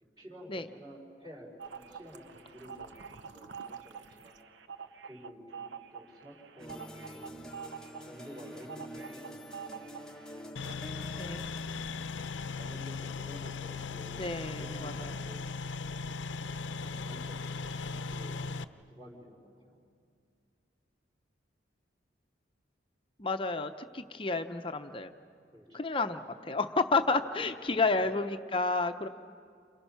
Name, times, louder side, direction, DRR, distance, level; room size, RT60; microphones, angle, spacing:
voice 1, 0.2-4.4 5.0-7.6 8.0-9.9 11.0-11.4 12.5-15.9 16.6-17.6 18.1-18.5 18.9-19.8 25.5-25.8 26.9-27.3, equal, 25° right, -9 dB, 4.5 m, -51 dB
sound 1, 1.6-10.3 10.6-10.7, right 6 dB, 75° right, 0.8 m, -46 dB
sound 2, 6.6-11.6, equal, 5° left, 1.1 m, -47 dB
sound 3, 10.6-18.6, left 4 dB, 80° left, 0.7 m, -38 dB
voice 2, 11.2-11.5 14.2-15.1 23.2-25.1 25.7-29.1, left 3 dB, 30° left, 8 dB, 0.7 m, -31 dB
30.0 x 27.5 x 5.7 m, 2.3 s
head